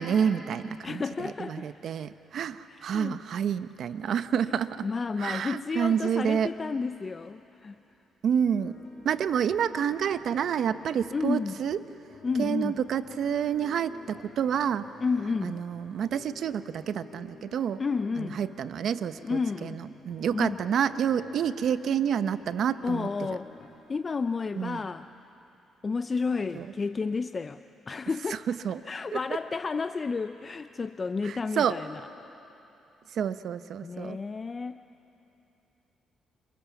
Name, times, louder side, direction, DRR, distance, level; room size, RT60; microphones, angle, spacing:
voice 1, 0.0-4.9 5.2-6.5 8.2-8.8 9.0-11.8 12.4-14.9 15.4-17.8 18.2-23.1 24.6-24.8 26.5-26.7 28.5-28.8 31.2-31.8 33.1-34.2, right 8 dB, 65° right, 12 dB, 0.9 m, -29 dB
voice 2, 0.8-1.7 2.7-3.2 4.8-7.8 11.1-11.6 12.2-12.8 15.0-15.6 17.8-18.4 19.2-19.8 20.3-20.6 22.8-23.5 23.9-25.1 25.8-27.6 27.9-28.4 28.9-32.1 33.8-34.8, left 4 dB, 35° left, 10 dB, 0.5 m, -31 dB
sound 1, 8.4-23.7, left 4 dB, 55° left, 7.7 m, -52 dB
28.0 x 27.5 x 7.2 m, 3.0 s
cardioid pair, 90°, 0 cm